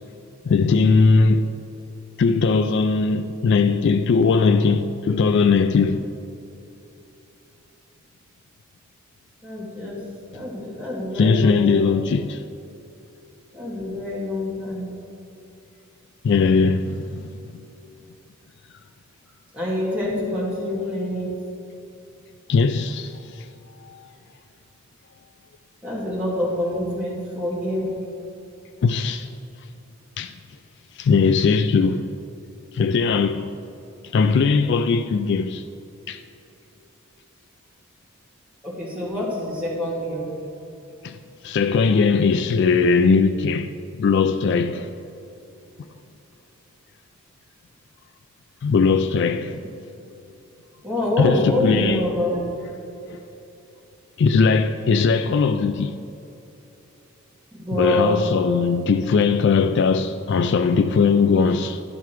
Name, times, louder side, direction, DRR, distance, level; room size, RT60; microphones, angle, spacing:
voice 1, 0.5-1.5 2.2-6.0 11.1-12.4 16.2-17.3 22.5-23.5 23.8-24.1 28.8-29.3 30.2-30.3 31.0-32.0 32.7-33.5 34.1-35.6 36.1-36.2 41.0-41.2 41.4-44.9 48.6-49.6 51.2-52.1 53.1-53.2 54.2-56.0 57.7-61.8, left 4 dB, 55° left, 0.3 m, -19 dB
voice 2, 9.4-10.0 10.3-11.8 13.5-14.9 19.5-21.3 25.8-28.0 38.6-40.3 50.8-52.4 57.6-58.2, left 1 dB, 5° right, 2.4 m, -26 dB
12.0 x 5.8 x 4.7 m
head